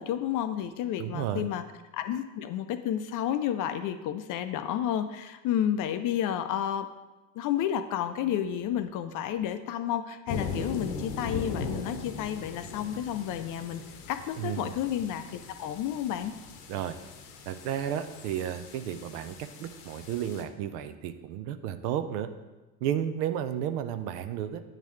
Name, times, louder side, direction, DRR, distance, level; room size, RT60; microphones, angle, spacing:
voice 1, 0.0-1.6 1.9-6.9 7.3-16.3, left 10 dB, 45° left, 10 dB, 0.5 m, -31 dB
voice 2, 1.0-1.5 14.4-14.7 16.7-17.0 17.5-22.3 22.8-24.6, right 10 dB, 70° right, 10 dB, 0.7 m, -32 dB
sound 1, 10.3-20.4, left 4 dB, 75° left, 0.9 m, -40 dB
8.9 x 3.8 x 3.1 m, 1.1 s
hypercardioid pair, 75°, 48 cm